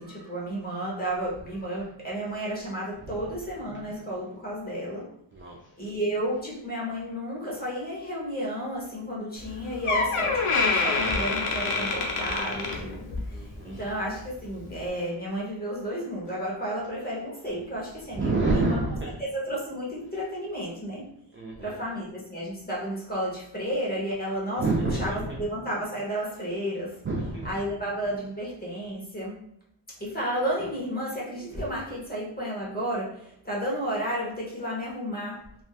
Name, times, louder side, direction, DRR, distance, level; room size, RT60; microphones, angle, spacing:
voice 1, 0.0-5.1 5.8-18.8 19.2-21.1 21.6-24.6 25.0-27.0 27.4-29.4 29.9-35.4, equal, 20° left, -5 dB, 0.9 m, -32 dB
voice 2, 5.3-5.7 13.3-13.8 18.1-19.2 21.3-21.8 24.6-25.4 27.0-27.6, right 2 dB, 30° right, -2 dB, 0.3 m, -28 dB
Door, 9.4-9.5 9.9-13.4 13.7-14.0 14.7-14.8, left 3 dB, 90° left, 0.7 m, -26 dB
3.3 x 2.5 x 2.3 m, 0.70 s
wide cardioid pair, 130°, 49 cm